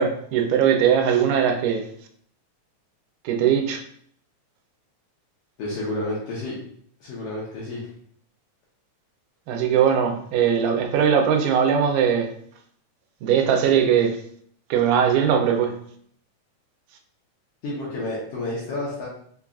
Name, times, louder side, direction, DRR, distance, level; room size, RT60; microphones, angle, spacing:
voice 1, 0.0-1.9 3.3-3.8 9.5-12.3 13.2-14.2 14.7-15.8, right 8 dB, 90° right, 2.1 m, -20 dB
voice 2, 5.6-6.6 7.0-7.9 17.6-19.1, left 2 dB, 70° left, 1.5 m, -30 dB
5.1 x 2.3 x 2.3 m
omnidirectional pair, 3.5 m